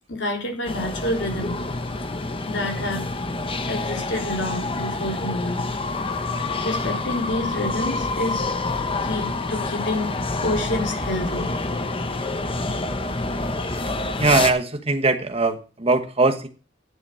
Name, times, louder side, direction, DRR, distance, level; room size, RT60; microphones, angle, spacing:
voice 1, 0.1-3.0 3.7-5.7 6.6-8.5 9.0-11.5 11.9-12.0, left 1 dB, 65° left, 2 dB, 3.4 m, -29 dB
sound 1, 0.7-14.5, left 2 dB, 30° left, 1.0 m, -27 dB
voice 2, 14.2-16.5, right 3 dB, 30° right, 6 dB, 1.3 m, -20 dB
10.5 x 7.5 x 6.4 m, 0.35 s
head